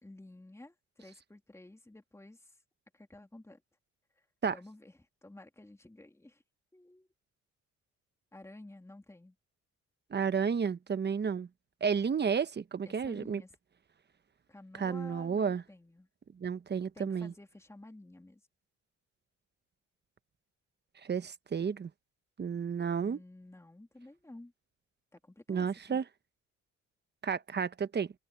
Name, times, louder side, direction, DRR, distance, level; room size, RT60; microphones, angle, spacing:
voice 1, 0.0-2.6 2.9-3.6 4.1-4.3 4.5-6.4 6.7-7.1 8.3-9.3 12.8-13.6 14.5-16.1 16.9-18.4 23.0-24.5 25.1-26.0, left 2 dB, 10° left, 3.1 m, -52 dB
voice 2, 10.1-11.5 11.8-13.4 14.8-15.6 16.4-17.3 21.0-21.9 22.4-23.2 25.5-26.0 27.2-28.1, right 6 dB, 35° right, 1.0 m, -31 dB
cardioid pair, 90°, 30 cm